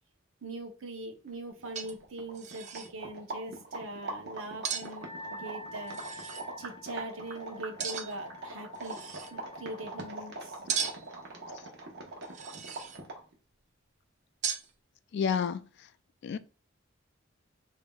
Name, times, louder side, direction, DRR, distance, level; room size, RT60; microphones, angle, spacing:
voice 1, 0.4-6.0 6.6-9.0 9.3-10.6, right 2 dB, 80° right, 0.8 m, -42 dB
sound 1, 1.3-1.4 1.7-2.1 2.3-2.9 4.6-4.9 5.9-6.5 7.8-8.3 8.7-9.3 10.7-11.2 12.2-13.0 14.4-14.7, right 7 dB, 35° right, 0.4 m, -36 dB
sound 2, 1.6-13.3, right 2 dB, 55° right, 1.0 m, -43 dB
Wind instrument woodwind instrument, 4.9-10.5, left 2 dB, 20° left, 1.6 m, -48 dB
voice 2, 15.1-15.9 16.2-16.4, left 7 dB, 55° left, 0.3 m, -31 dB
5.4 x 2.7 x 2.3 m
head